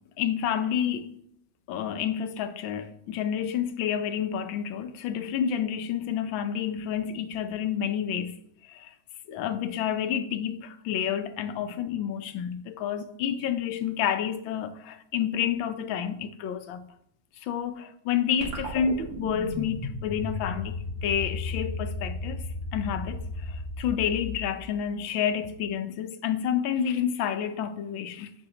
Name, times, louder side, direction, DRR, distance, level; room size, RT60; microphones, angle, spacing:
voice 1, 0.2-1.1 1.7-8.4 8.7-8.9 9.3-16.8 17.4-20.7 21.0-22.4 22.7-28.3, left 8 dB, 75° left, 1.4 m, -29 dB
sound 1, 18.4-24.9, left 2 dB, 85° right, 3.2 m, -35 dB
12.0 x 6.0 x 2.9 m
omnidirectional pair, 2.3 m